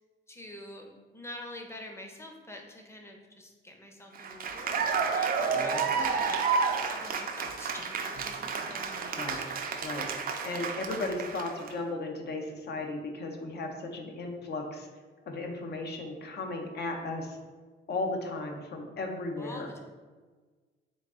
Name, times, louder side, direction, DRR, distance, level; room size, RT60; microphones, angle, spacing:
voice 1, 0.3-9.4 19.4-19.9, left 1 dB, 15° left, 2 dB, 0.7 m, -46 dB
Cheering / Applause, 4.1-11.7, right 5 dB, 45° right, 0.4 m, -31 dB
voice 2, 5.5-6.2 9.2-9.4 9.8-14.9 15.3-17.4 17.9-19.7, left 2 dB, 55° left, 3 dB, 0.7 m, -36 dB
3.7 x 2.5 x 3.6 m, 1.4 s
cardioid pair, 90°, 20 cm